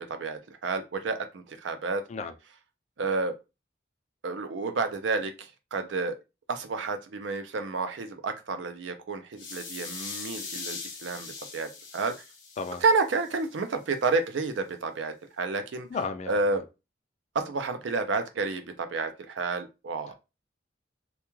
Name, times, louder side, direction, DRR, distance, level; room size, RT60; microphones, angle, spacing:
voice 1, 0.0-2.0 3.0-3.3 4.2-5.3 5.7-6.2 6.5-12.1 12.8-15.9 16.3-16.6 17.3-20.1, right 3 dB, 70° right, 0.5 m, -30 dB
sound 1, 9.4-13.4, left 4 dB, 80° left, 0.8 m, -41 dB
voice 2, 15.9-16.6 20.1-20.2, left 4 dB, 35° left, 0.3 m, -34 dB
2.2 x 2.2 x 3.0 m
head